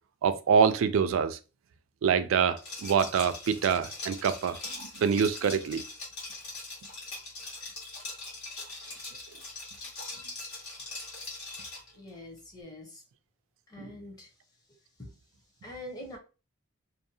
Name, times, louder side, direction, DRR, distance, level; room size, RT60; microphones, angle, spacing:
voice 1, 0.2-1.4 2.0-4.6 5.0-5.8 13.8-13.9, right 6 dB, 70° right, 0.3 m, -25 dB
Liquid, 2.6-11.9, left 3 dB, 85° left, 1.4 m, -41 dB
voice 2, 12.0-13.0 13.7-14.3 15.0-15.1 15.6-16.2, left 1 dB, 20° left, 0.6 m, -44 dB
2.6 x 2.0 x 2.7 m
head